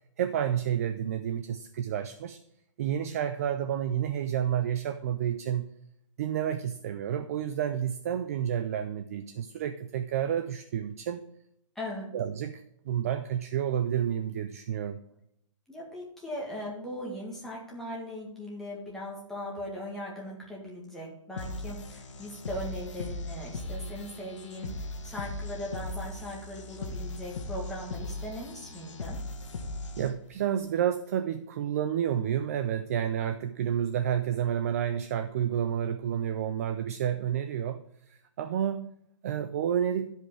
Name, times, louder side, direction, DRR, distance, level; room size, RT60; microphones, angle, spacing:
voice 1, 0.2-2.4 2.8-5.7 6.2-11.2 12.1-15.0 30.0-37.8 38.1-38.9 39.2-40.1, right 9 dB, 30° right, 9 dB, 0.4 m, -30 dB
voice 2, 11.8-12.1 15.7-29.2, left 1 dB, ahead, -5 dB, 2.0 m, -39 dB
sound 1, 21.4-30.4, left 2 dB, 70° left, 1.5 m, -38 dB
11.5 x 5.3 x 4.9 m, 0.77 s
hypercardioid pair, 160°, 16 cm